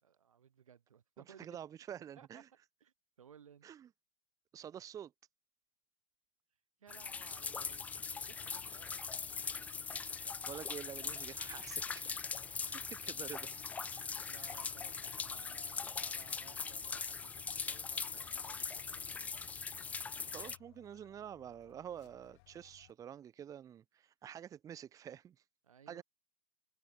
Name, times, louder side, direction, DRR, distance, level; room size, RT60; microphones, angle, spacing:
voice 1, 0.0-1.5 2.2-2.4 2.8-3.7 6.8-9.2 12.6-12.8 14.3-19.5 25.6-26.0, right 8 dB, 75° right, 3.1 m, -60 dB
voice 2, 1.4-2.5 3.6-3.9 4.5-5.1 10.2-12.1 12.6-13.5 17.5-17.6 20.2-25.4 25.9-26.0, right 9 dB, 20° right, 1.1 m, -48 dB
sound 1, 6.9-20.6, left 5 dB, 10° left, 0.3 m, -41 dB
sound 2, 8.1-22.9, left 26 dB, 45° left, 1.5 m, -65 dB
hypercardioid pair, 115°, 17 cm